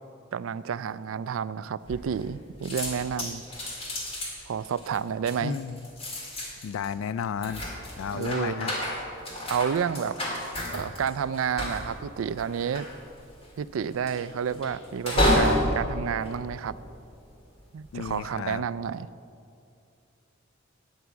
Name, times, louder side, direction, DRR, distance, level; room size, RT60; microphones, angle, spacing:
voice 1, 0.3-3.4 4.5-5.6 8.1-8.7 9.5-10.2 10.7-12.9 13.6-16.8 17.7-19.1, right 7 dB, 80° right, 17 dB, 0.4 m, -30 dB
sound 1, 1.9-2.4 2.6-17.2 17.8-18.2, equal, 30° left, 2.0 m, -31 dB
voice 2, 5.4-5.9 6.6-7.6 8.0-8.7 17.9-18.7, left 7 dB, 75° left, 16 dB, 0.3 m, -33 dB
9.5 x 9.1 x 6.9 m, 2.5 s
head